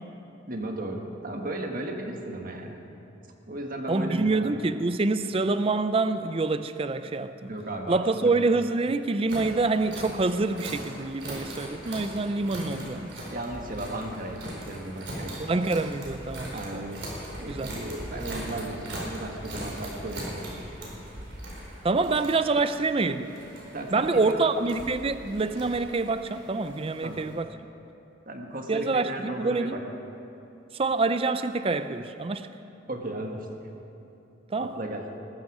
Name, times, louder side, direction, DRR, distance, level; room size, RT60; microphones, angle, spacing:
voice 1, 0.5-2.8 3.5-4.5 7.5-8.3 13.3-15.5 16.5-17.0 17.4-20.6 23.7-24.5 27.0-27.2 28.2-29.8 32.9-33.5 34.6-35.1, right 1 dB, 45° right, 1.6 m, -35 dB
voice 2, 3.9-7.5 7.9-13.2 15.5-16.8 17.5-17.7 21.8-23.3 23.9-27.5 28.7-29.8 30.7-32.5 34.5-34.7, right 3 dB, 30° right, 0.4 m, -26 dB
sound 1, 9.3-27.3, right 1 dB, 65° right, 4.7 m, -40 dB
19.5 x 14.5 x 4.9 m
head